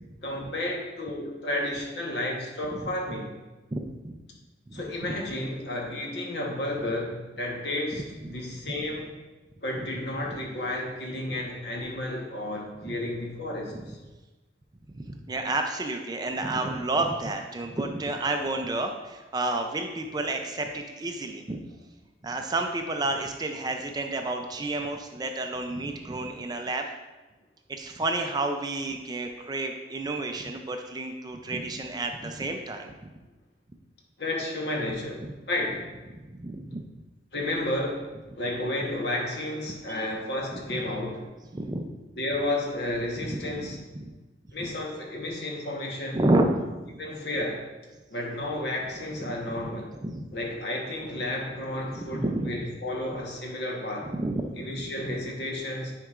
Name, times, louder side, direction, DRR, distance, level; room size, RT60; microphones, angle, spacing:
voice 1, 0.2-3.3 4.7-9.1 9.6-14.0 34.2-35.8 37.3-38.1 38.4-41.2 42.2-43.8 44.5-46.2 47.0-47.7 48.1-50.0 50.3-54.1 54.6-55.9, left 1 dB, 65° left, 0 dB, 1.1 m, -32 dB
voice 2, 3.7-4.2 4.7-5.2 7.9-8.0 12.9-13.0 14.9-21.6 22.2-26.9 27.7-33.1 35.2-35.3 36.1-36.8 39.9-40.1 40.5-40.6 41.5-41.9 43.4-44.1 46.1-46.5 49.2-49.3 50.0-50.3 52.0-52.6 54.0-55.1, right 2 dB, 20° right, 4 dB, 0.4 m, -30 dB
8.9 x 4.6 x 2.4 m, 1.2 s
head